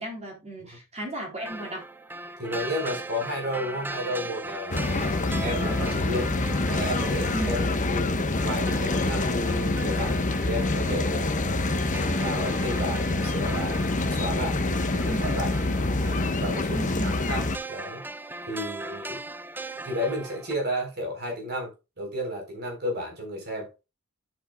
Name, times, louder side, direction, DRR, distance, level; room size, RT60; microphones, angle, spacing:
voice 1, 0.0-1.9 7.3-7.7 15.1-15.3 16.7-17.1, right 1 dB, 30° right, 3.8 m, -34 dB
sound 1, 1.4-20.6, right 2 dB, 10° right, 0.5 m, -39 dB
voice 2, 2.4-6.3 6.7-11.6 12.1-15.5 16.1-18.1 18.5-19.2 19.8-23.7, equal, 50° right, 4.1 m, -33 dB
sound 2, 4.7-17.6, left 2 dB, 35° left, 1.0 m, -26 dB
11.5 x 7.8 x 2.3 m
head